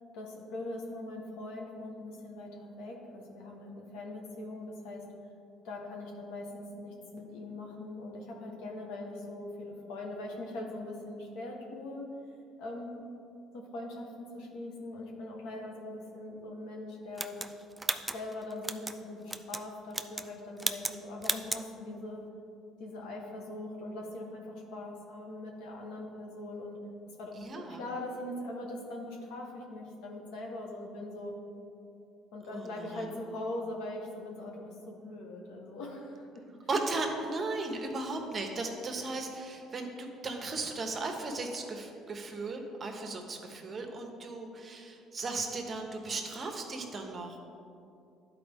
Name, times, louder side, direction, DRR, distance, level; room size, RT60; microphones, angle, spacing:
voice 1, 0.1-5.0 5.6-12.1 12.6-13.0 13.5-17.6 18.1-22.2 22.8-26.8 27.2-31.3 32.3-36.4, left 2 dB, 85° left, 1 dB, 1.2 m, -41 dB
sound 1, 17.2-19.0 19.3-19.6 19.9-20.3 20.6-21.0 21.2-21.6, right 2 dB, 10° right, 0.3 m, -34 dB
voice 2, 27.4-27.8 32.5-33.1 36.7-47.4, right 3 dB, 35° right, 3 dB, 1.0 m, -36 dB
11.0 x 4.4 x 3.6 m, 2.6 s
cardioid pair, 95°, 0 cm